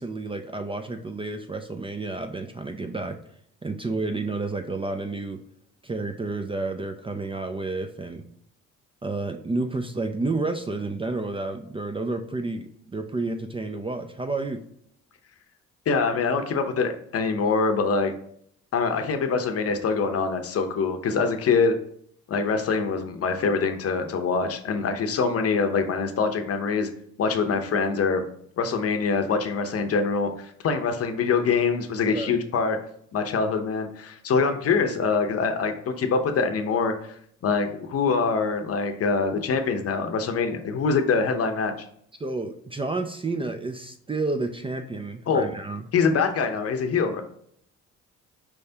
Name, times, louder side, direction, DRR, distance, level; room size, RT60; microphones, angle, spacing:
voice 1, 0.0-3.2 3.6-5.4 5.8-8.2 9.0-14.6 32.1-32.4 42.2-45.9, right 3 dB, 20° right, 6 dB, 0.4 m, -30 dB
voice 2, 15.9-18.1 18.7-21.7 22.3-26.9 27.2-28.3 28.6-32.8 33.1-36.9 37.4-41.7 45.3-45.4 45.9-47.2, left 5 dB, 50° left, 7 dB, 0.7 m, -24 dB
4.7 x 3.3 x 2.7 m, 0.68 s
cardioid pair, 90°, 30 cm